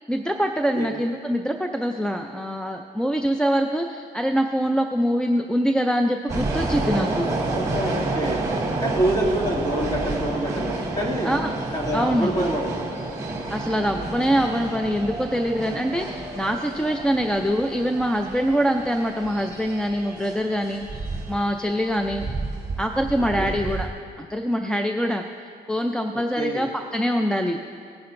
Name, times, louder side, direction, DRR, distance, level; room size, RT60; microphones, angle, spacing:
voice 1, 0.1-7.3 11.2-11.5 11.9-12.3 13.5-22.3 22.8-23.9 24.2-25.2 25.7-27.6, equal, 5° left, 3 dB, 0.4 m, -24 dB
sound 1, 6.3-23.9, right 2 dB, 20° right, 1.9 m, -30 dB
voice 2, 7.5-8.5 8.8-11.4 11.7-12.9 23.4-23.5 26.1-26.7, right 1 dB, 25° left, -4 dB, 2.4 m, -27 dB
18.0 x 10.0 x 2.6 m, 2.3 s
cardioid pair, 115°, 17 cm